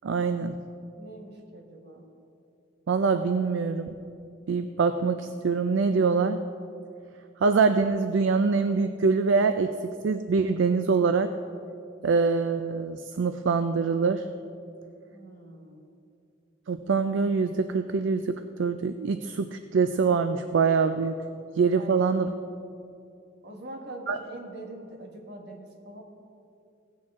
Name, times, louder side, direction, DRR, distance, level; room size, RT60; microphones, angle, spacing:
voice 1, 0.0-0.6 2.9-4.0 4.5-6.4 7.4-9.7 10.0-11.3 12.0-14.3 16.7-21.2 21.6-22.3 24.1-24.2, right 5 dB, 75° right, 9 dB, 0.4 m, -24 dB
voice 2, 1.0-2.0 15.1-15.9 21.7-22.4 23.4-26.0, right 1 dB, 60° right, 2 dB, 1.5 m, -43 dB
16.5 x 8.7 x 3.6 m, 2.5 s
head